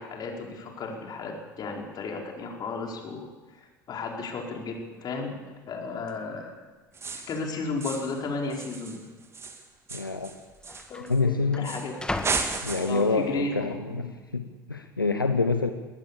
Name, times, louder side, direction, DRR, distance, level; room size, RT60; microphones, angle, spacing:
voice 1, 0.0-3.3 3.6-6.5 7.3-9.0 10.9-11.9 12.7-14.1, left 3 dB, 40° left, 1 dB, 5.1 m, -34 dB
sound 1, 4.6-4.7 5.0-5.4 6.1-6.2 6.9-7.4 7.7-7.8 8.7-8.9 9.9-10.0 10.2-13.4 13.9-14.3, left 2 dB, 10° left, 1.6 m, -39 dB
sound 2, 6.9-7.4 7.8-8.2 8.5-11.2 11.6-11.9 12.2-13.1, right 4 dB, 25° right, 2.7 m, -34 dB
voice 2, 9.9-10.4 11.1-11.7 12.6-14.1 14.3-15.7, left 4 dB, 85° left, 8 dB, 1.0 m, -26 dB
21.5 x 18.5 x 7.1 m, 1.3 s
figure-of-eight pair, 70°, 11 cm